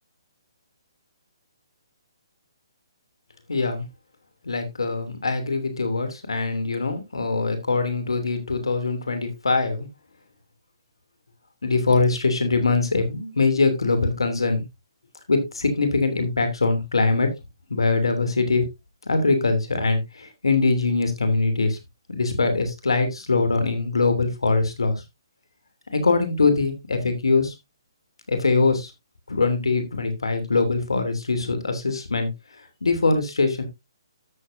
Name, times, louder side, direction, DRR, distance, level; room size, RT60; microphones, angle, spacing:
voice 1, 3.5-3.9 4.4-9.9 11.6-14.6 15.3-17.3 17.7-18.6 19.0-21.8 22.1-24.9 26.0-27.5 28.3-28.9 29.3-32.3 32.8-33.6, left 3 dB, 85° left, 8 dB, 3.0 m, -22 dB
13.0 x 7.1 x 2.7 m, 0.21 s
hypercardioid pair, 150°, 3 cm